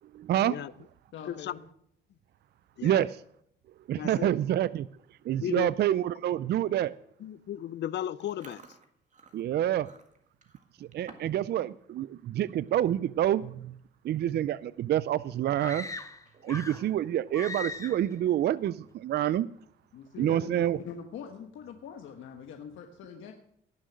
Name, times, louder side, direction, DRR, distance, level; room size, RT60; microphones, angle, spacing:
voice 1, 0.1-0.5 2.8-3.1 3.9-4.9 5.3-6.9 9.3-9.9 10.9-13.8 14.0-15.9 16.4-19.5 20.2-20.8, right 12 dB, 55° right, 0.4 m, -27 dB
voice 2, 1.1-1.6 19.9-23.3, left 7 dB, 80° left, 1.2 m, -43 dB
voice 3, 4.0-4.3 5.4-5.7 7.2-8.6, left 11 dB, 60° left, 0.6 m, -35 dB
Chewing mastication, 8.2-11.5 11.8-12.1 12.5-12.7 13.5-13.6 13.8-14.2 14.6-14.7 16.1-16.7, right 4 dB, 40° right, 1.8 m, -54 dB
sound 1, 15.6-16.9 17.3-18.1, left 3 dB, 15° left, 1.0 m, -39 dB
18.0 x 6.4 x 6.3 m
cardioid pair, 90°, 20 cm